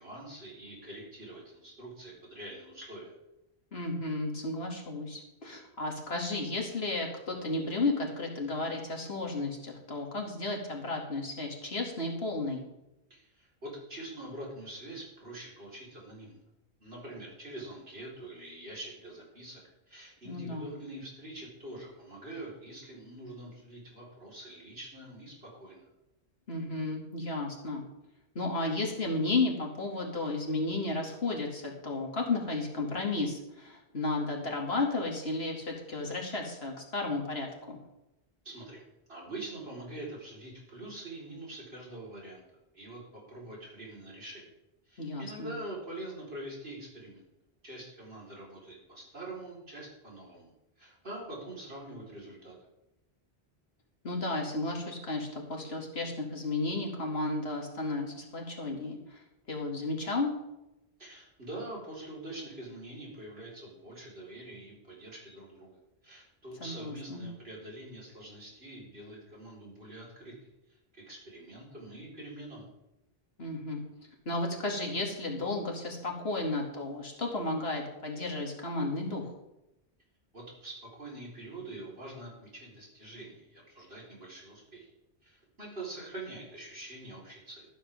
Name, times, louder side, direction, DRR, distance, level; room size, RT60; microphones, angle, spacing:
voice 1, 0.0-3.2 13.1-16.4 16.8-19.6 19.9-25.9 38.4-38.8 39.1-42.4 42.7-44.5 44.9-47.2 47.6-52.6 61.0-72.7 80.3-84.9 85.2-87.7, right 1 dB, 70° right, -4 dB, 4.7 m, -45 dB
voice 2, 3.7-12.6 20.2-20.7 26.5-27.8 28.3-37.8 45.0-45.5 54.0-60.3 66.6-67.2 73.4-73.8 74.3-79.3, left 2 dB, 70° left, 0 dB, 2.8 m, -33 dB
13.5 x 13.0 x 3.6 m, 0.91 s
omnidirectional pair, 1.1 m